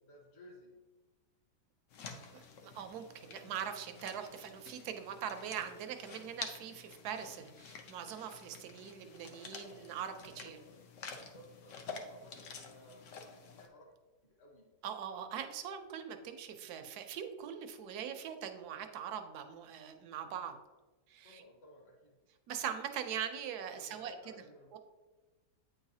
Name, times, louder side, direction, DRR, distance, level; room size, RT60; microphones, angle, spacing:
voice 1, 0.0-0.8 10.4-13.9 14.3-14.7 21.2-22.2 23.7-24.7, left 1 dB, 40° left, -1 dB, 1.3 m, -58 dB
sound 1, 1.9-13.7, left 5 dB, 60° left, 0.8 m, -50 dB
voice 2, 2.7-10.6 14.8-20.6 21.1-21.4 22.5-24.1 24.7-24.8, right 8 dB, 75° right, 7 dB, 1.1 m, -42 dB
8.7 x 3.9 x 2.7 m, 1.2 s
omnidirectional pair, 1.8 m